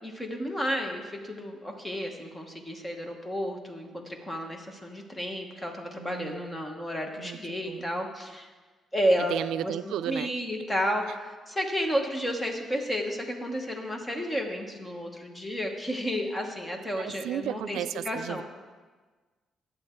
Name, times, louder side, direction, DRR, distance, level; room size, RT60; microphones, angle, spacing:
voice 1, 0.0-8.5 8.9-9.3 9.6-17.8 18.0-18.4, equal, 10° left, 2 dB, 1.0 m, -32 dB
voice 2, 6.0-6.6 7.2-8.0 9.2-10.3 16.9-18.4, right 11 dB, 90° right, 14 dB, 0.3 m, -34 dB
11.0 x 7.9 x 4.4 m, 1.4 s
cardioid pair, 170°, 0 cm